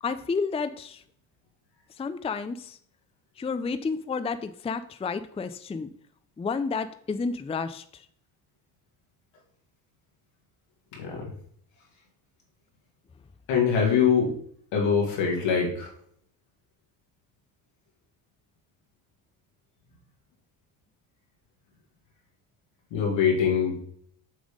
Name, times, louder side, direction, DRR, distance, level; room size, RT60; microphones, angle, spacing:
voice 1, 0.0-1.0 2.0-2.8 3.4-5.9 6.4-8.0, left 5 dB, 15° left, 11 dB, 0.5 m, -31 dB
voice 2, 11.0-11.3 13.5-14.3 14.7-15.9 22.9-23.8, left 6 dB, 80° left, -1 dB, 2.5 m, -23 dB
7.5 x 3.5 x 5.1 m, 0.62 s
supercardioid pair, 60°, 43 cm